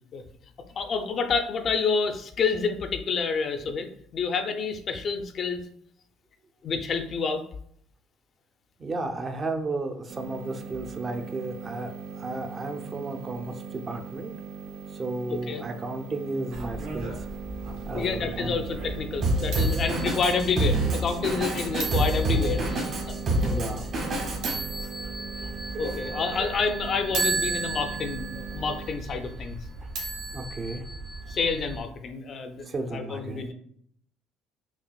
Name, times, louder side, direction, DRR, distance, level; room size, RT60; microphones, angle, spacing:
voice 1, 0.8-5.6 6.6-7.4 15.5-15.6 17.9-23.1 25.8-29.6 31.3-32.7 32.9-33.5, left 5 dB, 40° left, 7 dB, 0.4 m, -28 dB
voice 2, 8.8-14.3 15.0-17.3 17.9-18.6 23.5-23.8 30.3-30.8 32.7-33.5, right 2 dB, 25° right, 5 dB, 0.5 m, -33 dB
sound 1, 10.1-28.9, right 5 dB, 85° right, 0.5 m, -40 dB
sound 2, 16.5-31.8, right 3 dB, 70° right, 1.5 m, -35 dB
Drum kit, 19.2-24.5, right 1 dB, 50° right, 1.5 m, -26 dB
5.6 x 2.4 x 2.3 m, 0.66 s
cardioid pair, 125°, 0 cm